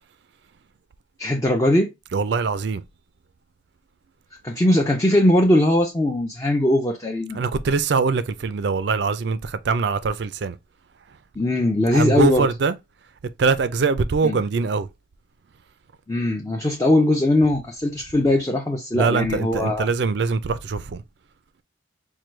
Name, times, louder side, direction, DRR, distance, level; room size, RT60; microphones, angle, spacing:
voice 1, 1.2-1.9 4.4-7.4 11.4-12.5 14.2-14.4 16.1-19.9, left 1 dB, 15° left, 0.4 m, -20 dB
voice 2, 2.1-2.8 7.3-10.6 11.9-12.7 13.4-14.9 18.9-21.0, right 4 dB, 60° right, 0.4 m, -22 dB
4.5 x 2.2 x 3.2 m
head